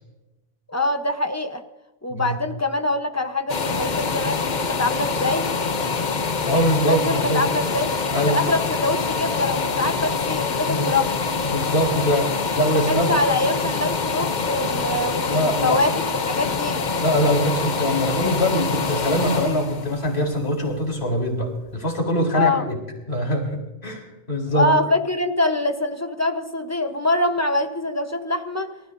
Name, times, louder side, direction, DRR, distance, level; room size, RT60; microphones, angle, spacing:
voice 1, 0.7-1.6 2.0-5.5 6.9-8.0 8.3-11.1 12.9-15.9 16.3-16.8 22.3-22.6 24.6-28.7, left 2 dB, 15° left, 6 dB, 1.1 m, -24 dB
sound 1, 3.5-21.2 21.6-21.7, left 4 dB, 45° left, 1.0 m, -25 dB
voice 2, 6.4-7.4 8.1-8.4 10.7-11.0 11.4-13.1 15.2-15.8 17.0-22.8 23.1-24.7, equal, 75° left, 1 dB, 4.3 m, -23 dB
29.0 x 14.5 x 2.7 m, 1.0 s
omnidirectional pair, 1.1 m